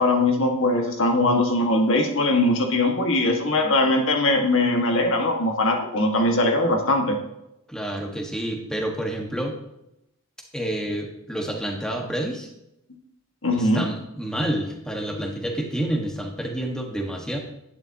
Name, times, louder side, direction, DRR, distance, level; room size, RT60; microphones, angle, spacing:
voice 1, 0.0-7.2 13.4-13.9, left 2 dB, 60° left, 2 dB, 1.8 m, -21 dB
voice 2, 7.7-9.6 10.5-12.5 13.6-17.4, right 1 dB, 5° left, 1 dB, 1.6 m, -29 dB
11.0 x 10.5 x 2.9 m, 0.85 s
head